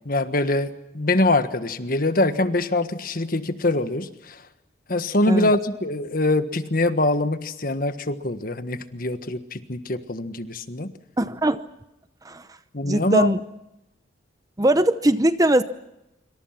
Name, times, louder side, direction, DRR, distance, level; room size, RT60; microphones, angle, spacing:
voice 1, 0.0-4.4 4.9-10.9 12.7-13.4, left 2 dB, 45° left, 10 dB, 1.5 m, -24 dB
voice 2, 11.2-11.6 12.2-12.4 12.9-13.4 14.6-15.6, right 1 dB, 20° right, 12 dB, 0.8 m, -20 dB
26.5 x 25.0 x 5.9 m, 0.91 s
head